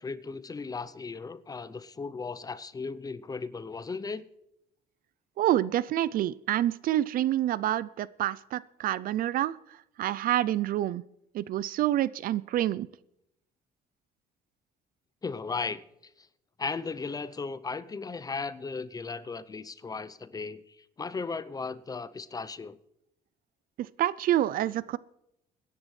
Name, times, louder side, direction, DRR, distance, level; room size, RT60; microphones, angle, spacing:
voice 1, 0.0-4.2 15.2-15.9 16.6-20.6 21.0-22.8, left 4 dB, 20° left, 0.6 m, -36 dB
voice 2, 5.4-9.5 10.0-11.0 11.3-12.9 23.8-25.0, right 13 dB, 60° right, 0.4 m, -27 dB
24.0 x 10.5 x 3.2 m
cardioid pair, 110°, 17 cm